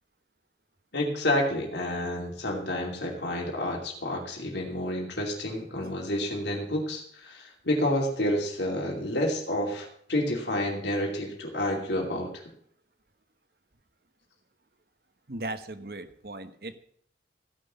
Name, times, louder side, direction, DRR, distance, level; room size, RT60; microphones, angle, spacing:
voice 1, 0.9-12.4, left 1 dB, 75° left, 0 dB, 2.7 m, -29 dB
voice 2, 15.3-16.8, right 2 dB, 55° right, 10 dB, 1.1 m, -37 dB
15.5 x 6.2 x 6.9 m, 0.64 s
head